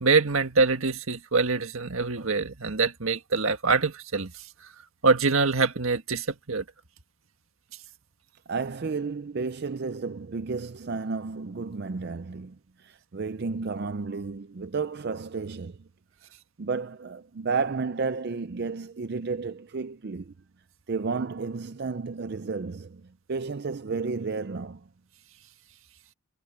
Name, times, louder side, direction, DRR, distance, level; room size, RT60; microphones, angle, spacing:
voice 1, 0.0-4.3 5.0-6.6, right 4 dB, 85° right, 1.7 m, -24 dB
voice 2, 8.5-15.9 16.6-20.3 20.9-23.0 23.3-24.9, right 4 dB, 50° right, 0.5 m, -32 dB
head